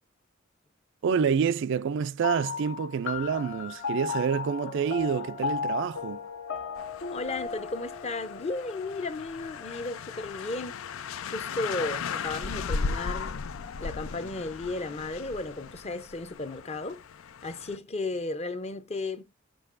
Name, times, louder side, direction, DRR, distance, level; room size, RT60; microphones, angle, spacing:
voice 1, 1.0-6.3, right 6 dB, 60° right, 0.4 m, -28 dB
sound 1, 2.2-11.1, left 5 dB, 65° left, 1.0 m, -36 dB
sound 2, 6.8-17.8, left 5 dB, 80° left, 0.5 m, -37 dB
voice 2, 7.1-10.7 11.3-13.4 13.8-17.0 17.4-19.2, left 2 dB, 30° left, 0.7 m, -34 dB
7.8 x 5.9 x 2.5 m
head